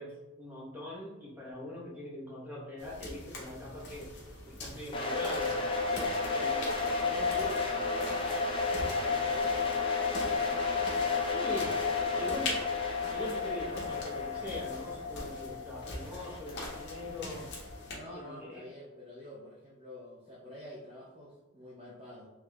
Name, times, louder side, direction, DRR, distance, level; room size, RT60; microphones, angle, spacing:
voice 1, 0.0-4.1 4.4-5.5 6.3-6.8 11.3-11.8 12.2-12.6 13.1-17.5 18.1-18.7, left 1 dB, 10° right, -6 dB, 0.9 m, -42 dB
sound 1, 2.8-18.0, left 2 dB, 55° left, 0.7 m, -44 dB
sound 2, 4.9-17.8, left 4 dB, 25° left, 0.4 m, -32 dB
voice 2, 6.9-12.3 15.4-15.6 17.9-22.3, left 1 dB, 25° right, -7 dB, 0.5 m, -47 dB
3.5 x 3.0 x 2.3 m, 1.1 s
head